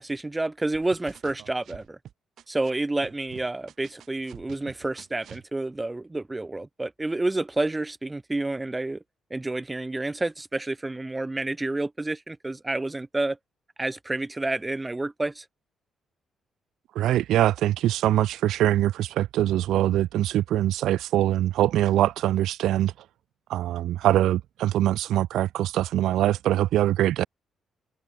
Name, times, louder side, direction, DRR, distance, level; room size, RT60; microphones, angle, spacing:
voice 1, 0.0-2.0 2.5-9.0 9.3-13.4 13.8-15.4, right 2 dB, 10° right, 4.8 m, -29 dB
sound 1, 0.7-2.7 3.0-5.5, right 10 dB, 60° right, 6.0 m, -47 dB
voice 2, 17.0-22.9 23.5-27.3, right 13 dB, 85° right, 1.8 m, -23 dB
cardioid pair, 165°, 0 cm